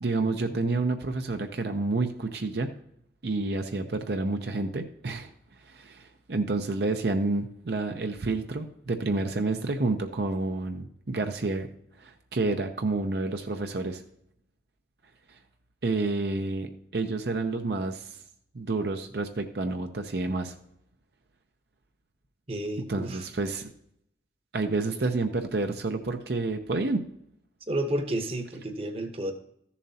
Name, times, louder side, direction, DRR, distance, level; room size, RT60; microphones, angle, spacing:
voice 1, 0.0-2.7 3.2-5.3 5.6-11.7 12.0-14.0 15.8-18.2 18.5-20.5 22.9-23.7 24.5-27.0, right 3 dB, 65° right, 5 dB, 0.6 m, -29 dB
voice 2, 22.5-23.2 27.7-29.3, right 1 dB, 30° right, 6 dB, 0.9 m, -31 dB
14.0 x 7.1 x 2.8 m, 0.75 s
head